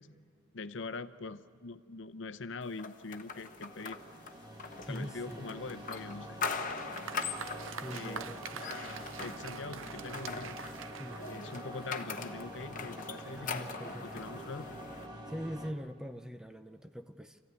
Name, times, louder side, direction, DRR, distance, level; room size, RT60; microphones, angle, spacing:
voice 1, 0.5-4.0 4.9-6.4 7.9-8.2 9.2-10.6 11.3-13.7 14.0-14.7, left 3 dB, 65° left, 10 dB, 0.7 m, -43 dB
sound 1, 2.8-15.1, left 5 dB, 40° left, 1.1 m, -42 dB
sound 2, 3.1-15.7, equal, 20° right, 1.9 m, -46 dB
voice 2, 4.8-5.5 7.7-8.7 11.0-11.2 13.4-14.2 15.3-17.4, equal, 5° right, 9 dB, 0.5 m, -43 dB
Applause, 6.4-12.0, right 7 dB, 75° right, 0.6 m, -46 dB
26.5 x 15.0 x 9.5 m, 2.1 s
head